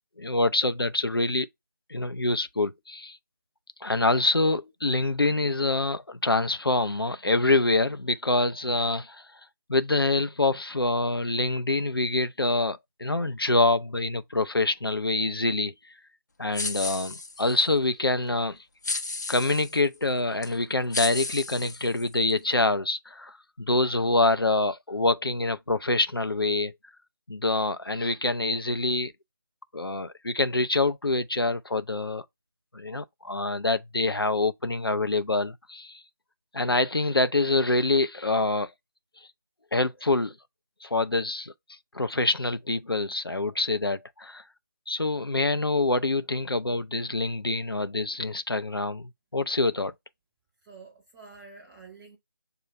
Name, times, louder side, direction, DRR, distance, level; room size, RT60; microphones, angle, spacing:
voice 1, 0.2-1.5 1.9-3.2 3.8-9.2 9.7-15.7 16.4-18.6 19.3-26.7 27.3-29.1 29.7-32.2 32.7-36.0 36.5-38.7 39.7-40.3 40.8-41.5 41.9-44.4 44.9-49.9, left 2 dB, 90° left, 0.5 m, -26 dB
sound 1, 16.5-17.7 18.8-19.8 20.4-20.5 20.9-22.3, left 3 dB, 50° left, 0.7 m, -33 dB
voice 2, 50.6-52.2, right 4 dB, 5° right, 0.6 m, -48 dB
6.8 x 2.3 x 3.2 m
figure-of-eight pair, 160°, 12 cm